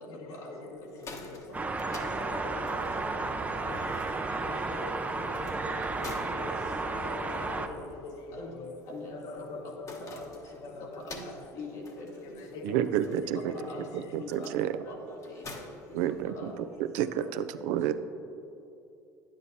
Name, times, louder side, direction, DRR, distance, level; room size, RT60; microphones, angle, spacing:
voice 1, 0.1-1.6 2.2-3.9 4.3-8.8 9.1-11.5 12.3-14.2 16.1-16.2 17.1-17.2 17.8-17.9, left 3 dB, 60° left, 0.8 m, -44 dB
sound 1, 0.8-16.7, left 3 dB, 35° left, 1.0 m, -50 dB
sound 2, 1.5-7.7, right 3 dB, 15° right, 0.5 m, -33 dB
sound 3, 1.7-6.9, right 2 dB, 35° right, 1.1 m, -48 dB
voice 2, 7.3-7.8 8.3-8.5 8.9-9.4 10.0-10.2 10.8-11.2 11.5-12.1 13.5-13.9 14.2-14.5 14.8-15.3 16.3-16.6 17.3-17.4, left 2 dB, 80° left, 1.9 m, -43 dB
voice 3, 12.6-13.5 13.9-14.7 15.9-17.9, right 11 dB, 75° right, 0.4 m, -30 dB
10.5 x 8.7 x 2.7 m
hypercardioid pair, 75°, 9 cm